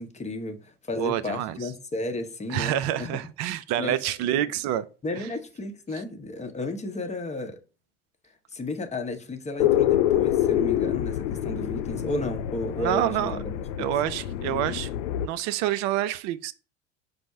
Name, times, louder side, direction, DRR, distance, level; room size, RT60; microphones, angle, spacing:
voice 1, 0.0-3.2 3.5-4.0 4.3-4.4 5.0-7.6 8.5-13.9, left 2 dB, 20° left, 0.7 m, -33 dB
voice 2, 1.0-1.6 2.5-4.8 5.2-5.3 12.8-13.4 13.8-14.9 15.2-16.5, right 12 dB, 55° right, 0.5 m, -27 dB
sound 1, 9.6-15.3, left 12 dB, 70° left, 0.5 m, -26 dB
5.2 x 2.0 x 4.5 m
hypercardioid pair, 70°, 35 cm